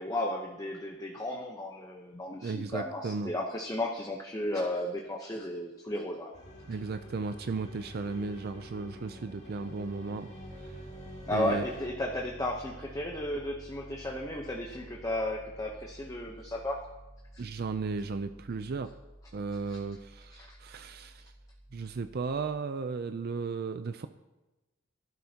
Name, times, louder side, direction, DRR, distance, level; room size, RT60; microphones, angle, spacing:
voice 1, 0.0-6.3 11.3-16.8 17.3-17.4 19.7-19.8 20.3-20.6, left 1 dB, 15° left, 0 dB, 0.9 m, -34 dB
voice 2, 2.4-3.3 6.7-10.3 10.6-10.8 11.3-11.6 17.4-18.9 19.3-21.3 21.7-24.1, right 4 dB, 50° right, 10 dB, 0.4 m, -35 dB
sound 1, 6.3-11.9, equal, 35° left, 2.2 m, -47 dB
Piano, 10.3-22.5, right 1 dB, 35° right, 3.9 m, -51 dB
15.0 x 12.0 x 2.9 m, 1.1 s
head